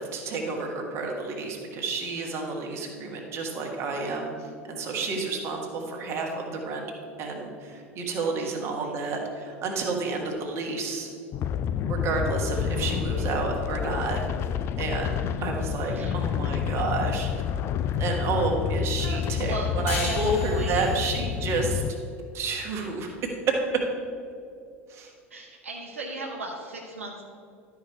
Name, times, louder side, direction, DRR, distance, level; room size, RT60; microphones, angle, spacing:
voice 1, 0.0-6.8 7.2-11.1 11.8-14.2 14.8-17.3 18.0-21.8 22.3-23.5 24.9-25.1, right 3 dB, 40° right, 1 dB, 1.5 m, -30 dB
voice 2, 8.4-9.1 12.8-13.3 15.2-15.5 15.9-16.1 19.0-20.2 20.5-21.2 25.3-27.2, right 2 dB, 75° right, -1 dB, 0.8 m, -38 dB
sound 1, 11.3-21.9, left 8 dB, 35° left, 0.3 m, -29 dB
sound 2, 19.9-23.0, left 4 dB, 70° left, 1.5 m, -38 dB
12.0 x 4.9 x 4.5 m, 2.4 s
figure-of-eight pair, 75°, 7 cm